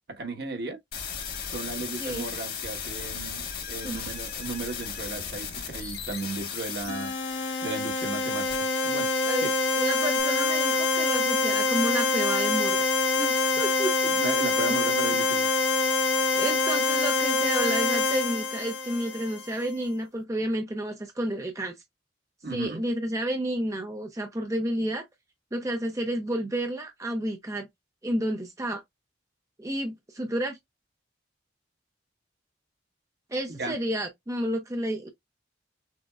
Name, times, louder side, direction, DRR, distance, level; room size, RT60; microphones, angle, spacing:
voice 1, 0.1-0.8 1.5-7.1 7.6-8.5 8.8-9.1 9.4-9.5 14.2-15.5 22.4-22.8 33.5-33.7, right 3 dB, 60° right, 1.3 m, -35 dB
sound 1, 0.9-10.2, left 6 dB, 55° left, 1.9 m, -37 dB
voice 2, 3.8-4.1 9.2-9.5 9.8-12.9 13.2-14.1 14.7-14.8 16.4-21.7 22.5-25.0 25.5-27.7 28.0-28.8 29.6-30.6 33.3-35.1, right 1 dB, 15° right, 0.5 m, -30 dB
sound 2, 6.9-19.6, left 3 dB, 85° left, 0.9 m, -25 dB
6.1 x 2.1 x 2.3 m
head